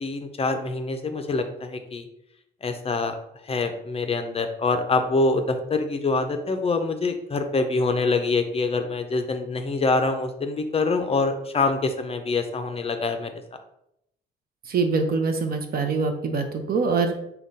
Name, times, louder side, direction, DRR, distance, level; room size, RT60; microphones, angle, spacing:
voice 1, 0.0-2.1 2.6-3.1 3.4-13.3, left 3 dB, 30° left, 6 dB, 0.4 m, -25 dB
voice 2, 14.7-17.1, right 4 dB, 50° right, 6 dB, 0.6 m, -24 dB
3.6 x 2.3 x 3.9 m, 0.79 s
cardioid pair, 90°, 20 cm